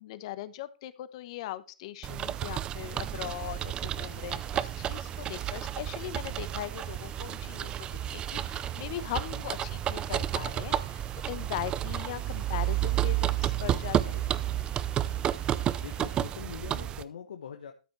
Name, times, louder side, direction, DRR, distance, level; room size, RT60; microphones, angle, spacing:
voice 1, 0.0-14.2, left 14 dB, 50° left, 14 dB, 1.0 m, -40 dB
sound 1, 2.0-17.0, right 11 dB, 20° right, 0.5 m, -31 dB
sound 2, 3.3-16.3, left 9 dB, 30° left, 2.9 m, -60 dB
voice 2, 15.8-17.7, left 8 dB, 75° left, 5 dB, 1.2 m, -43 dB
13.0 x 7.1 x 3.3 m, 0.32 s
hypercardioid pair, 135°, 4 cm